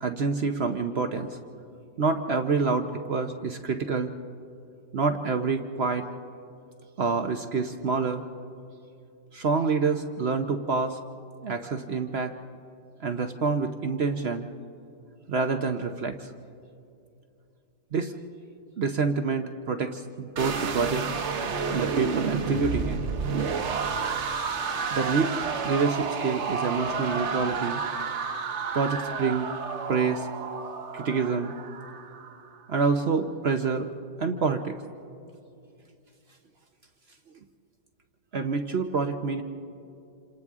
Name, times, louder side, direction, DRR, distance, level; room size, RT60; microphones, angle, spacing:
voice 1, 0.0-1.4 2.0-4.1 4.9-6.0 7.0-8.2 9.3-11.0 11.4-12.3 13.0-14.5 15.3-16.3 17.9-18.1 18.8-21.1 21.7-23.0 24.9-25.3 25.6-27.8 28.7-29.5 29.9-30.3 30.9-31.5 32.7-33.9 34.2-34.8 38.3-39.4, right 4 dB, 65° right, 6 dB, 0.6 m, -27 dB
sound 1, 20.4-32.4, right 5 dB, 50° right, 1.0 m, -30 dB
28.0 x 26.5 x 3.6 m, 2.6 s
omnidirectional pair, 2.0 m